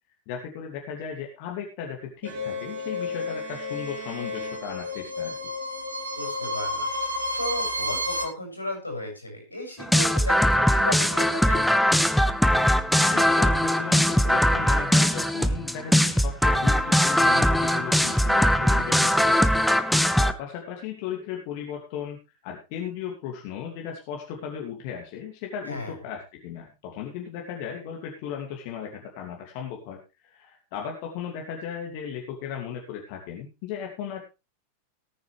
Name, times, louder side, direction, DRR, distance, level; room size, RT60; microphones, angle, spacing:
voice 1, 0.3-5.4 13.0-19.6 20.2-22.2 22.4-34.2, left 8 dB, 45° left, 1 dB, 2.6 m, -36 dB
Bowed string instrument, 2.2-5.4, right 4 dB, 45° right, 4.0 m, -41 dB
sound 1, 2.2-8.2, left 2 dB, 75° right, 2.4 m, -31 dB
voice 2, 6.1-6.9 7.4-11.7 25.7-25.9, left 1 dB, 85° left, 2 dB, 7.1 m, -34 dB
sound 2, 9.8-20.3, equal, ahead, 0.8 m, -21 dB
18.5 x 9.3 x 3.4 m, 0.28 s
figure-of-eight pair, 90°, 0 cm